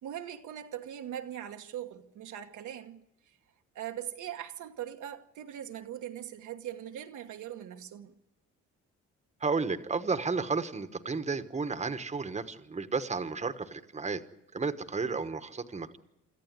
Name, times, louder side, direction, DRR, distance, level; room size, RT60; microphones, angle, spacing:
voice 1, 0.0-3.4 3.7-8.1 15.1-15.2, right 10 dB, 80° right, 1.3 m, -41 dB
voice 2, 9.4-14.2 14.5-16.0, right 4 dB, 20° right, 1.2 m, -32 dB
25.5 x 14.0 x 9.5 m
cardioid pair, 90°, 30 cm